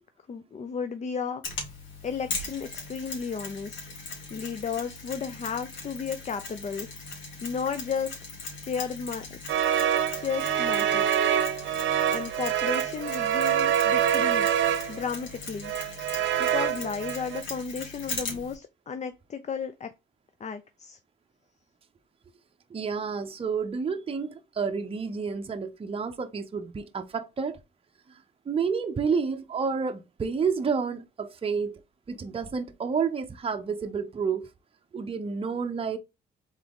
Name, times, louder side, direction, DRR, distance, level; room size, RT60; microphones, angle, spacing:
voice 1, 0.3-1.6 2.0-3.8 4.3-7.1 7.4-8.2 8.5-9.4 10.1-11.1 12.1-14.6 14.9-15.7 16.4-19.9 20.4-21.0, left 6 dB, 35° left, 0.6 m, -33 dB
Mechanisms, 1.4-18.5, left 3 dB, 70° left, 2.3 m, -40 dB
sound 1, 9.5-15.1 15.6-17.4, right 9 dB, 75° right, 0.7 m, -26 dB
voice 2, 22.7-27.6 28.5-31.8 32.1-34.5 34.9-36.0, right 5 dB, 30° right, 0.7 m, -30 dB
4.0 x 3.7 x 3.5 m
cardioid pair, 90°, 20 cm